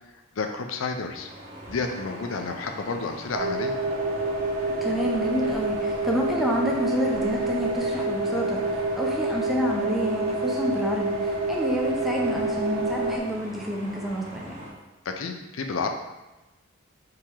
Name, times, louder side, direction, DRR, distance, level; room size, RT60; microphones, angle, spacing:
voice 1, 0.3-1.3 1.7-3.8 15.0-15.9, left 4 dB, 75° left, 5 dB, 0.5 m, -30 dB
sound 1, 0.8-14.7, equal, 30° right, 1.2 m, -42 dB
sound 2, 3.3-13.2, right 2 dB, 80° right, 0.4 m, -27 dB
voice 2, 4.8-14.6, equal, ahead, -2 dB, 0.5 m, -29 dB
3.7 x 2.9 x 4.4 m, 1.1 s
head